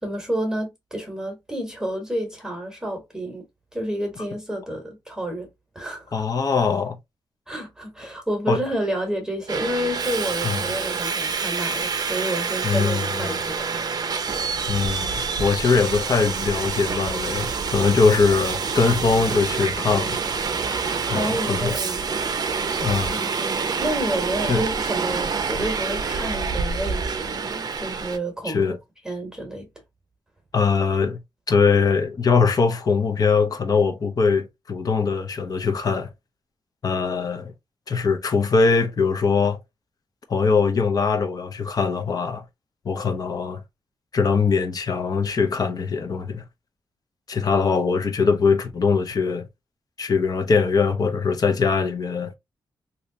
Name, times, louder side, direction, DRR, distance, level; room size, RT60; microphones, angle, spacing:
voice 1, 0.0-3.4 3.7-5.5 5.7-6.2 7.5-13.9 20.7-22.0 23.1-28.8 29.0-29.7, right 1 dB, 10° right, 1.1 m, -30 dB
voice 2, 6.1-7.0 8.5-8.6 10.4-10.6 12.6-13.4 14.7-20.2 21.1-21.8 22.8-23.2 24.5-24.6 28.4-28.8 30.5-31.2 31.5-36.1 36.8-37.5 37.9-39.6 40.3-42.4 42.8-43.6 44.1-46.4 47.3-49.5 50.0-52.3, left 5 dB, 50° left, 0.7 m, -22 dB
Subway metro underground, 9.5-28.2, right 5 dB, 50° right, 0.5 m, -27 dB
3.2 x 2.7 x 2.6 m
wide cardioid pair, 110°, 8 cm